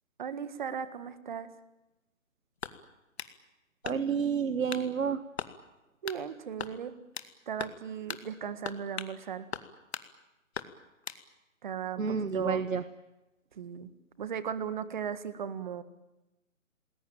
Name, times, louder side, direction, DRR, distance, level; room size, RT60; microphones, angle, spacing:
voice 1, 0.2-1.5 6.0-6.9 7.5-9.5 11.6-12.6 13.6-13.9 14.2-15.8, right 8 dB, 35° right, 13 dB, 1.7 m, -36 dB
sound 1, 2.6-3.4 3.8-4.3 4.7-4.9 5.4-5.6 6.1-6.2 6.6-7.3 7.6-7.8 8.1-8.3 8.6-9.2 9.5-10.1 10.5-11.2, left 6 dB, 50° left, 2.1 m, -40 dB
voice 2, 3.8-5.2 12.0-12.8, right 6 dB, 75° right, 13 dB, 1.4 m, -29 dB
29.0 x 20.5 x 9.0 m, 1.0 s
hypercardioid pair, 160°, 41 cm